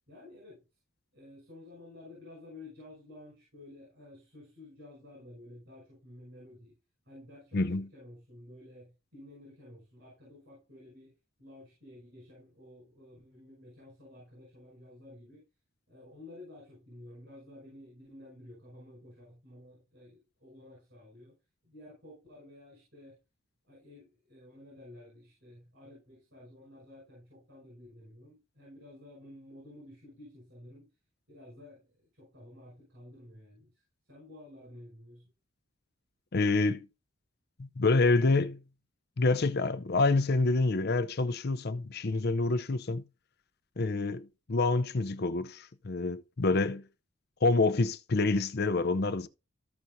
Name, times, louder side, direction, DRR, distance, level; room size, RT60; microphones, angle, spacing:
voice 1, 0.1-0.6 1.1-6.8 7.1-15.4 15.9-21.3 21.6-23.2 23.6-30.9 31.3-33.8 34.1-35.3, left 1 dB, 60° right, 5.8 m, -52 dB
voice 2, 7.5-7.8 36.3-36.9 37.6-38.6 39.2-43.0 43.8-46.8 47.4-49.3, left 3 dB, 50° left, 0.6 m, -27 dB
14.5 x 6.1 x 2.7 m
head